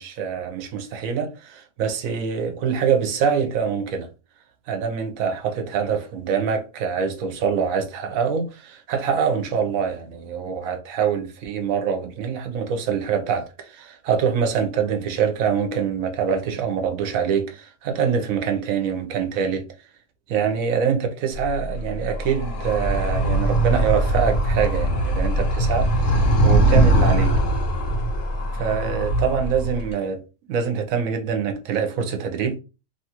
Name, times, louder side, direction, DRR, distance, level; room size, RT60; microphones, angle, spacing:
voice 1, 0.0-4.1 4.7-19.6 20.3-27.3 28.5-30.2 30.5-32.6, right 7 dB, 85° right, 1.1 m, -24 dB
Animal, 21.3-29.9, right 1 dB, 70° left, 1.1 m, -21 dB
3.0 x 2.3 x 2.8 m
omnidirectional pair, 1.4 m